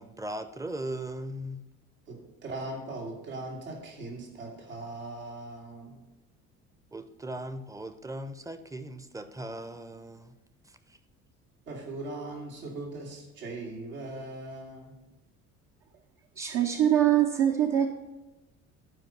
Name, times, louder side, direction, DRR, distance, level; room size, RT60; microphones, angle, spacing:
voice 1, 0.0-1.6 6.9-10.3 10.6-11.0, right 1 dB, 10° right, 11 dB, 0.7 m, -38 dB
voice 2, 2.1-6.0 11.7-15.0, right 2 dB, 75° right, -2 dB, 2.4 m, -39 dB
voice 3, 16.4-17.9, right 10 dB, 50° right, 2 dB, 0.9 m, -23 dB
11.0 x 5.1 x 5.7 m, 1.0 s
figure-of-eight pair, 55°, 42 cm